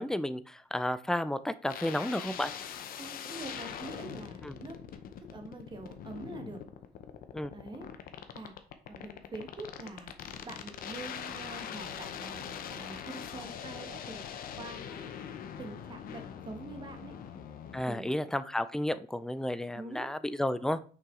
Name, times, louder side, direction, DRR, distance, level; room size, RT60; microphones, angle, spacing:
voice 1, 0.0-2.5 4.4-4.6 7.3-7.5 17.7-20.8, left 1 dB, 5° left, 13 dB, 0.4 m, -32 dB
sound 1, 1.7-17.8, left 8 dB, 60° left, 0.8 m, -42 dB
voice 2, 3.0-4.8 5.3-6.6 7.5-7.9 8.3-8.5 8.9-10.2 10.4-15.1 15.6-17.1 17.9-18.1 19.7-20.1, right 2 dB, 25° right, 4 dB, 1.4 m, -45 dB
5.9 x 4.6 x 3.8 m, 0.41 s
cardioid pair, 110°, 17 cm